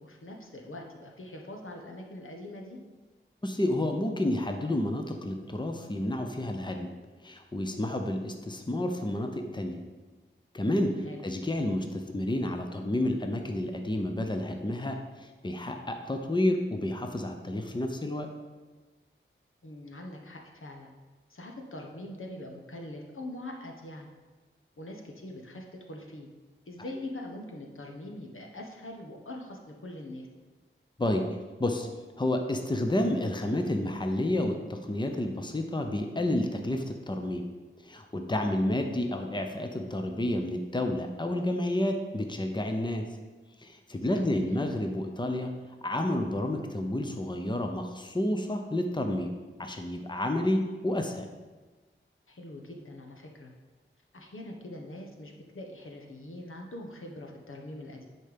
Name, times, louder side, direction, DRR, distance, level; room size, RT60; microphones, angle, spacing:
voice 1, 0.0-2.8 11.0-11.2 19.6-20.9 21.3-24.1 24.8-26.3 26.7-30.3 44.1-44.4 52.3-53.5 54.1-58.1, left 1 dB, 75° left, 1 dB, 1.3 m, -43 dB
voice 2, 3.4-6.9 7.2-9.8 10.5-18.3 31.0-31.2 31.6-31.9 32.2-37.4 37.8-43.0 43.6-45.5 45.8-49.3 49.6-51.3, left 1 dB, 20° left, 4 dB, 0.9 m, -30 dB
10.5 x 4.5 x 5.2 m, 1.3 s
wide cardioid pair, 50°, 21 cm